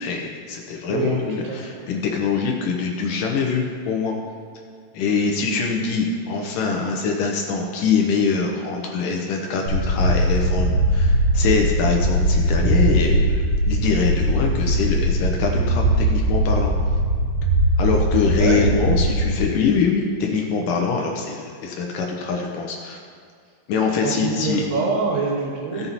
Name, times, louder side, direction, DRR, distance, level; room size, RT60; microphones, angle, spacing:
voice 1, 0.0-4.2 4.9-16.7 17.8-23.0 23.7-24.7 25.7-25.9, left 5 dB, 75° left, 1 dB, 2.0 m, -23 dB
sound 1, 9.7-19.4, right 1 dB, 65° right, 2.8 m, -20 dB
voice 2, 18.2-18.6 24.0-25.9, right 4 dB, 85° right, -2 dB, 3.4 m, -25 dB
16.0 x 5.7 x 4.1 m, 2.2 s
omnidirectional pair, 4.6 m